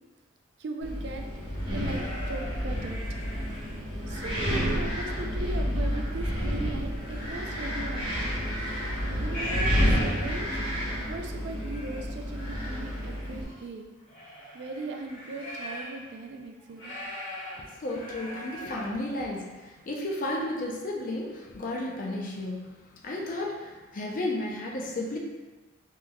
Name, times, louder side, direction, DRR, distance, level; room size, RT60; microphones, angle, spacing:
voice 1, 0.6-1.2 1.7-2.0 2.3-3.0 4.1-8.4 9.1-10.5 11.1-13.9 14.5-17.0, right 2 dB, 60° right, 3 dB, 0.3 m, -38 dB
Wind, 0.8-13.4, equal, 25° right, 0.9 m, -30 dB
sound 1, 1.5-4.0 4.5-5.3 5.7-10.5 11.1-11.2 11.4-12.0 12.6-16.0 16.4-18.9, equal, 75° left, 1.3 m, -40 dB
voice 2, 17.6-22.7 23.0-25.2, left 1 dB, 45° left, -1 dB, 0.5 m, -33 dB
3.5 x 2.9 x 2.2 m, 1.2 s
head